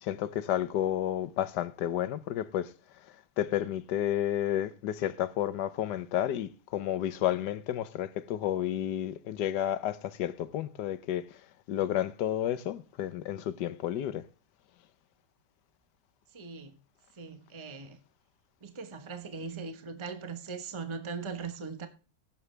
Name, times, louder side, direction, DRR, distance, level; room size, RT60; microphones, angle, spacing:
voice 1, 0.0-2.7 3.4-11.4 11.7-14.3, left 11 dB, 85° left, 1.4 m, -31 dB
voice 2, 16.3-16.7 17.2-18.0 18.6-21.9, right 5 dB, 20° right, 1.0 m, -40 dB
16.0 x 7.1 x 3.3 m
omnidirectional pair, 1.8 m